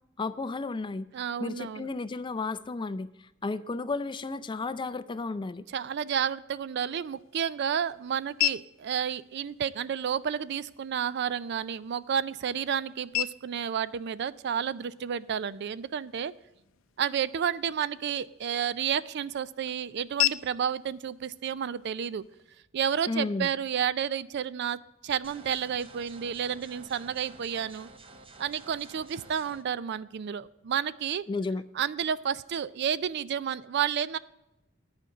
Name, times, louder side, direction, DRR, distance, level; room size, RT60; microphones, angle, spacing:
voice 1, 0.2-1.1 1.4-3.1 3.4-5.7 23.1-23.5 31.3-31.6, left 3 dB, 25° left, 14 dB, 0.4 m, -33 dB
voice 2, 1.1-1.9 5.7-16.3 17.0-22.2 22.7-27.9 28.4-31.2 31.8-34.2, right 8 dB, 55° right, 17 dB, 0.4 m, -31 dB
sound 1, 6.6-22.6, left 15 dB, 85° left, 0.5 m, -38 dB
sound 2, 25.2-29.6, right 3 dB, 25° right, 0.8 m, -51 dB
10.0 x 5.2 x 7.9 m, 0.92 s
head